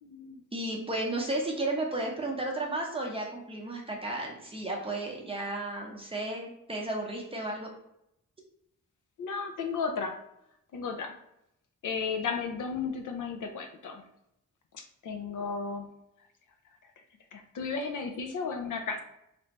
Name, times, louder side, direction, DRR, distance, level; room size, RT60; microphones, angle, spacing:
voice 1, 0.0-0.4 9.2-10.2 10.7-11.2 11.8-14.1 14.7-16.0 17.0-17.1 17.3-19.0, left 5 dB, 80° left, 5 dB, 0.6 m, -34 dB
voice 2, 0.5-7.7, right 2 dB, 20° right, -1 dB, 0.7 m, -33 dB
3.4 x 2.6 x 4.0 m, 0.80 s
wide cardioid pair, 175°, 30 cm